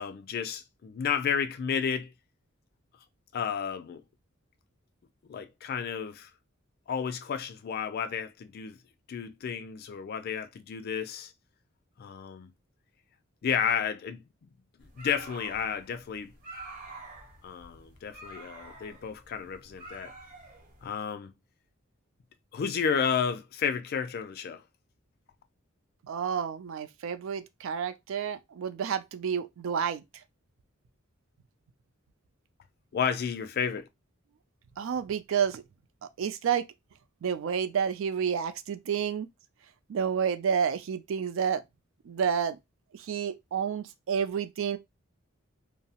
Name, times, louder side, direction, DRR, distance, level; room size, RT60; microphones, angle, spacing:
voice 1, 0.0-2.1 3.3-4.0 5.3-6.3 6.9-8.8 9.1-11.3 12.0-12.5 13.4-14.5 14.8-16.3 17.4-20.1 20.8-21.3 22.5-24.6 32.9-33.9, left 7 dB, 50° left, 0.3 m, -32 dB
sound 1, 14.8-20.9, right 1 dB, 40° right, 0.8 m, -47 dB
voice 2, 26.0-30.2 34.8-35.6 36.0-36.7 37.2-39.3 39.9-41.6 42.0-42.6 42.9-44.8, right 7 dB, 65° right, 0.3 m, -30 dB
2.6 x 2.0 x 2.8 m
head